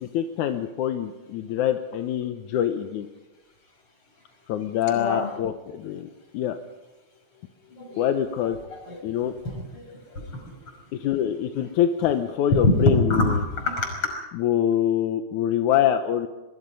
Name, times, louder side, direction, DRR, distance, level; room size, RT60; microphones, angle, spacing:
voice 1, 0.0-3.1 4.5-6.1 6.3-6.6 8.0-8.6 9.0-9.3 10.9-13.5 14.3-16.3, left 10 dB, 80° left, 7 dB, 2.4 m, -25 dB
voice 2, 4.9-5.3 7.7-8.0 8.9-9.0 9.4-9.6 9.9-10.5 12.5-13.3 13.7-14.2, left 2 dB, 45° left, 2 dB, 6.6 m, -24 dB
23.5 x 23.0 x 5.5 m, 1.1 s
omnidirectional pair, 3.4 m